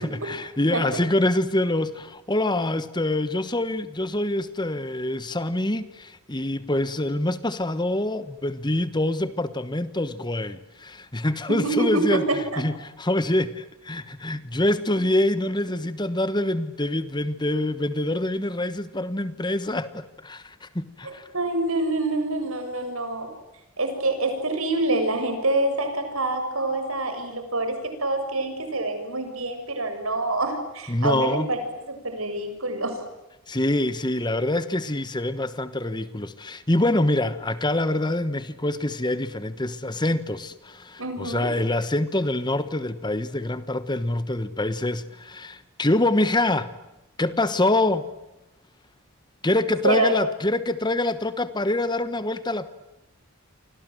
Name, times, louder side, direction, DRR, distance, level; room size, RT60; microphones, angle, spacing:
voice 1, 0.0-12.2 12.6-21.2 30.9-31.5 33.5-46.7 47.2-48.1 49.4-52.7, left 1 dB, 20° left, 1.2 m, -25 dB
voice 2, 11.5-12.2 12.5-12.6 21.0-23.3 23.8-33.0 41.0-41.5 49.8-50.1, right 2 dB, 70° right, 7.2 m, -26 dB
30.0 x 25.5 x 7.9 m
head